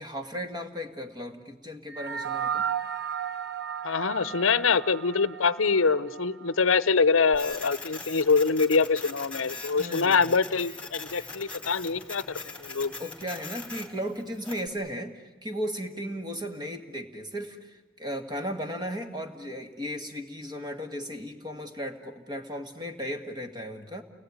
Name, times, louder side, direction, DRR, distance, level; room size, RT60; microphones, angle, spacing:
voice 1, 0.0-2.7 9.8-10.4 13.0-24.0, equal, 20° right, 6 dB, 2.0 m, -36 dB
sound 1, 1.9-6.5, right 8 dB, 55° right, 1.1 m, -34 dB
voice 2, 3.8-12.9, left 4 dB, 80° left, 17 dB, 0.9 m, -24 dB
Printer, 7.3-14.7, left 3 dB, 5° left, 3.1 m, -41 dB
29.5 x 19.5 x 9.7 m, 1.1 s
head